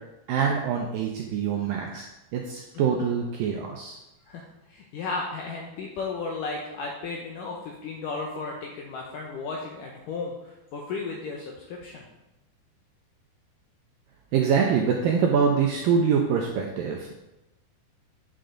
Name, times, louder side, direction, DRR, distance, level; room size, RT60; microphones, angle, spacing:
voice 1, 0.3-2.1 2.3-4.0 14.3-17.1, right 6 dB, 85° right, 0 dB, 2.0 m, -24 dB
voice 2, 4.3-12.0, left 4 dB, 80° left, -1 dB, 2.0 m, -34 dB
9.3 x 6.7 x 3.8 m, 0.96 s
omnidirectional pair, 4.8 m